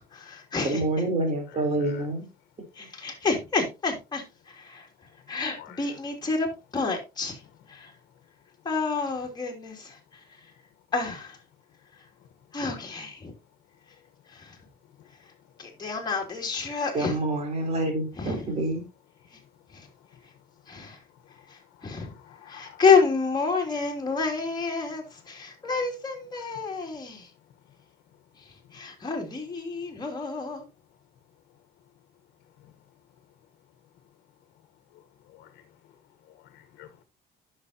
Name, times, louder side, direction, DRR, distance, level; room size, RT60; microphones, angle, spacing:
voice 1, 0.0-0.8 2.7-4.9 5.3-6.5 6.7-7.4 7.7-7.9 8.6-10.0 10.9-11.4 12.5-13.3 14.3-14.6 15.6-17.1 18.2-18.4 19.7-19.9 20.7-21.0 21.5-22.1 22.4-27.3 28.7-30.6, left 4 dB, 25° left, 2.9 m, -28 dB
voice 2, 0.6-2.3 2.8-2.9 16.9-18.8, right 2 dB, 40° right, 3.5 m, -27 dB
voice 3, 1.5-2.0 5.6-5.8 21.8-22.8 26.5-26.6 32.6-32.7 34.9-35.0 35.3-35.6 36.3-36.9, left 12 dB, 85° left, 1.2 m, -50 dB
10.0 x 6.6 x 2.8 m
cardioid pair, 110°, 17 cm